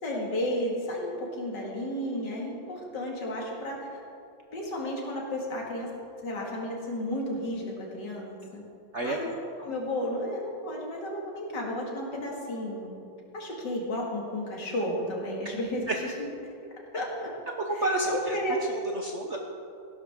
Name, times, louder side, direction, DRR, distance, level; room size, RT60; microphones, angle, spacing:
voice 1, 0.0-4.0 4.5-5.9 6.2-8.6 9.0-9.3 9.6-13.0 13.3-16.1 16.9-17.3 17.7-18.6, left 1 dB, 55° left, -2 dB, 2.7 m, -33 dB
voice 2, 8.9-9.4 15.9-16.0 17.5-18.4 18.7-19.4, right 2 dB, 60° right, 1 dB, 0.7 m, -30 dB
16.0 x 12.0 x 3.7 m, 2.6 s
omnidirectional pair, 2.3 m